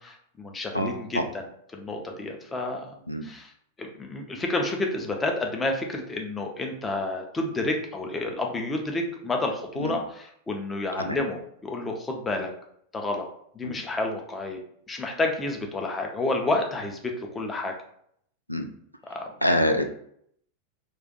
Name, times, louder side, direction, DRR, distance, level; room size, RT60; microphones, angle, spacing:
voice 1, 0.0-1.4 1.7-2.8 3.2-3.5 3.8-12.5 12.9-13.3 13.5-14.6 14.9-17.7 19.0-19.3, left 2 dB, 15° left, 2 dB, 0.6 m, -30 dB
voice 2, 0.7-1.3 3.1-3.3 9.8-9.9 11.0-11.2 13.6-13.8 18.5-18.7 19.4-19.9, equal, 90° left, 5 dB, 0.3 m, -25 dB
2.4 x 2.4 x 3.8 m, 0.68 s
figure-of-eight pair, 90°, 0 cm